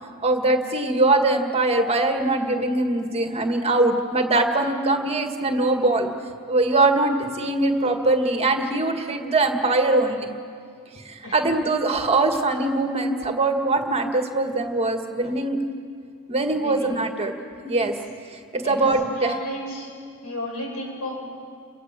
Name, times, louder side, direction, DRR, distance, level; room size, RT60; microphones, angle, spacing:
voice 1, 0.2-6.1 6.5-10.3 11.0-15.6 16.3-17.3 17.6-18.0 18.3-19.4, right 2 dB, 30° right, 5 dB, 1.9 m, -22 dB
voice 2, 16.6-16.9 17.7-17.9 18.6-18.9 19.1-19.9 20.2-21.2, left 1 dB, 90° left, 0 dB, 7.9 m, -33 dB
29.5 x 26.5 x 7.6 m, 2.3 s
head